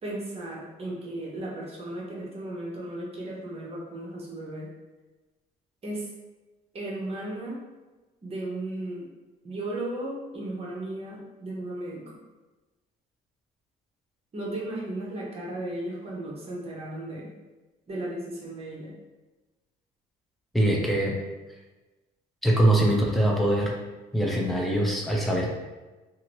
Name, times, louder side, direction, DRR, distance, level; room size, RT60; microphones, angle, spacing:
voice 1, 0.0-4.7 5.8-6.1 6.7-7.6 8.2-9.1 9.4-12.2 14.3-17.3 17.9-18.9, right 1 dB, 35° right, -4 dB, 0.9 m, -35 dB
voice 2, 20.5-21.1 22.4-23.7 24.1-25.5, right 1 dB, ahead, -2 dB, 0.6 m, -23 dB
2.7 x 2.5 x 3.1 m, 1.2 s
cardioid pair, 110°, 17 cm